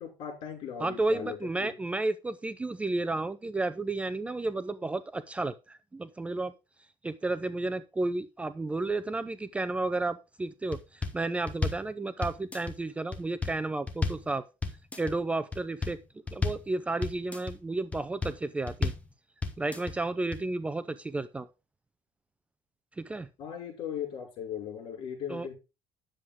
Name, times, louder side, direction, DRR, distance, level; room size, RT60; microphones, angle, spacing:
voice 1, 0.0-1.7 23.4-25.5, left 8 dB, 60° left, 2 dB, 5.6 m, -38 dB
voice 2, 0.8-6.5 7.0-14.4 15.0-16.0 16.3-18.9 19.6-21.5 23.0-23.3 25.3-25.5, right 2 dB, 10° right, 13 dB, 0.5 m, -32 dB
sound 1, 10.7-11.2 11.5-11.9 12.2-12.7 13.1-13.6 13.9-14.3 14.6-15.1 15.5-16.0 16.3-16.7 17.0-17.5 17.9-18.4 18.7-19.1 19.4-19.9 20.3-20.4, left 3 dB, 15° left, 1.4 m, -32 dB
10.0 x 7.6 x 3.6 m, 0.28 s
cardioid pair, 130°, 10 cm